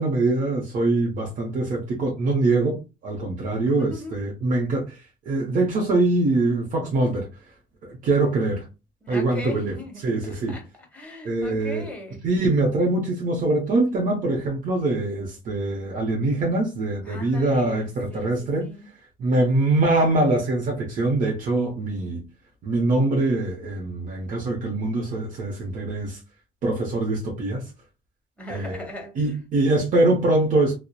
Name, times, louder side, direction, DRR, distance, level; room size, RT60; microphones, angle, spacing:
voice 1, 0.0-7.3 7.9-8.7 9.1-9.7 10.0-10.6 11.2-11.9 12.2-18.7 19.2-22.2 22.6-26.2 26.6-27.7 28.5-28.8 29.2-30.8, right 2 dB, 50° right, 0.7 m, -23 dB
voice 2, 3.6-4.2 9.0-10.0 10.5-10.7 10.9-12.3 17.0-18.3 18.6-18.9 28.4-29.4, left 2 dB, 10° left, 1.1 m, -38 dB
2.7 x 2.1 x 2.2 m
cardioid pair, 110°, 17 cm